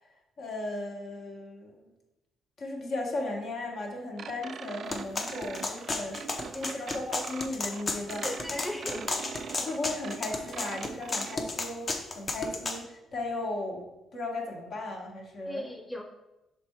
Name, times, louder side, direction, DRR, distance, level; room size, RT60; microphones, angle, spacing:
voice 1, 0.4-1.9 2.6-8.3 8.5-9.0 9.6-13.9 14.1-15.7, left 2 dB, 65° left, -1 dB, 1.5 m, -36 dB
sound 1, 4.2-11.4, right 6 dB, 55° right, 0.3 m, -43 dB
sound 2, 4.9-12.8, left 3 dB, 35° left, 0.8 m, -33 dB
voice 2, 6.4-6.8 8.2-9.2 15.5-16.0, left 1 dB, 5° left, 2 dB, 0.7 m, -38 dB
6.0 x 3.4 x 4.6 m, 0.98 s
cardioid pair, 90°, 0 cm